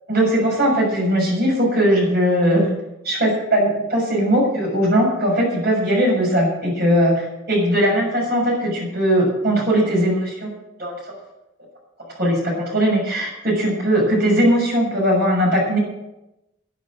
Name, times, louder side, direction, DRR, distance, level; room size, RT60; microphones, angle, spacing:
voice 1, 0.1-2.7 3.0-10.5 10.8-10.9 12.1-15.8, equal, 50° right, -2 dB, 6.4 m, -19 dB
11.5 x 9.8 x 7.7 m, 0.93 s
head